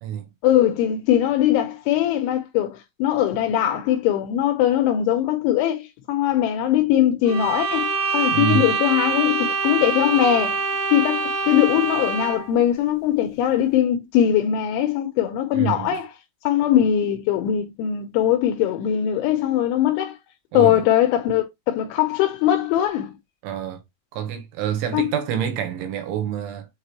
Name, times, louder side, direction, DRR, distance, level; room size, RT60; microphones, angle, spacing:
voice 1, 0.4-10.6 10.9-16.1 16.4-20.2 20.5-23.1 24.9-25.1, left 11 dB, 80° left, 3.0 m, -21 dB
sound 1, 7.2-12.5, right 4 dB, 60° right, 2.4 m, -25 dB
voice 2, 8.3-8.6 15.5-16.0 20.5-20.8 23.4-23.8 24.1-26.7, right 10 dB, 75° right, 3.3 m, -27 dB
8.2 x 3.9 x 2.9 m
omnidirectional pair, 5.9 m